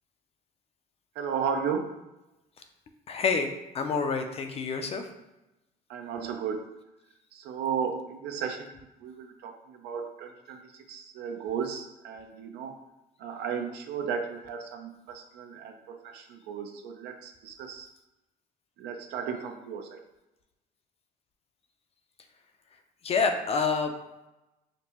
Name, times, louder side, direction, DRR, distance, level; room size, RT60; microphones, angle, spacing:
voice 1, 1.2-1.9 5.9-6.7 7.3-12.8 13.2-17.9 18.8-20.0, right 6 dB, 80° right, 4 dB, 0.5 m, -35 dB
voice 2, 3.1-3.5 3.7-5.1 23.0-23.9, left 5 dB, 35° left, 6 dB, 0.4 m, -27 dB
5.1 x 2.1 x 2.9 m, 0.96 s
cardioid pair, 110°, 17 cm